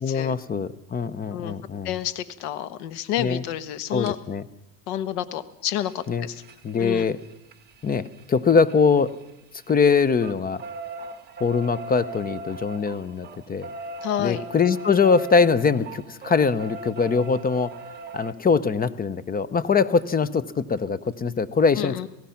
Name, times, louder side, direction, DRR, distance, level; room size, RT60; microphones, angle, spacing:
voice 1, 0.0-1.9 3.2-3.4 3.9-4.4 6.1-6.3 6.6-7.2 7.8-9.2 9.7-10.6 11.4-13.7 14.2-17.7 18.1-22.0, left 5 dB, 20° left, 19 dB, 0.8 m, -22 dB
voice 2, 1.8-4.2 4.9-6.4 6.8-7.1 14.0-14.4 21.8-22.1, left 11 dB, 80° left, 14 dB, 1.5 m, -29 dB
sound 1, 4.0-4.1 5.8-9.3 9.6-18.3 20.0-20.1 20.4-20.5 20.8-20.9, right 3 dB, 20° right, 2.1 m, -39 dB
27.0 x 17.5 x 5.8 m, 0.91 s
supercardioid pair, 115°, 45 cm